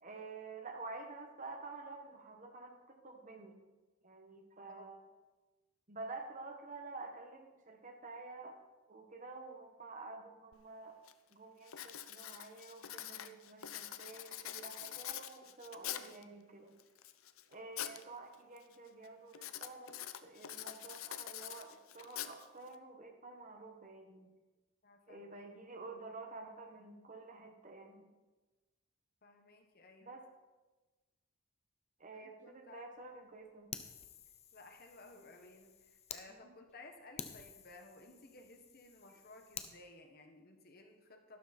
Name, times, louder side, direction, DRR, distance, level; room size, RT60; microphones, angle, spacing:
voice 1, 0.0-3.6 4.0-5.1 5.9-8.6 8.9-11.0 11.3-16.7 17.5-20.0 20.2-24.3 25.1-28.1 30.0-30.2 32.0-33.7 35.2-35.5 36.3-36.5, right 3 dB, 35° right, 4 dB, 1.4 m, -50 dB
Writing, 10.5-10.6 11.1-11.3 11.7-16.2 16.8-18.0 18.3-18.8 19.3-22.8, left 11 dB, 80° left, 0.7 m, -45 dB
voice 2, 24.8-25.4 29.2-30.1 32.1-32.9 34.5-41.4, left 2 dB, 45° left, 4 dB, 1.5 m, -57 dB
Fire, 33.7-36.2 36.7-36.8 37.2-39.7, left 7 dB, 30° left, 0.8 m, -50 dB
12.5 x 12.0 x 4.4 m, 1.2 s
head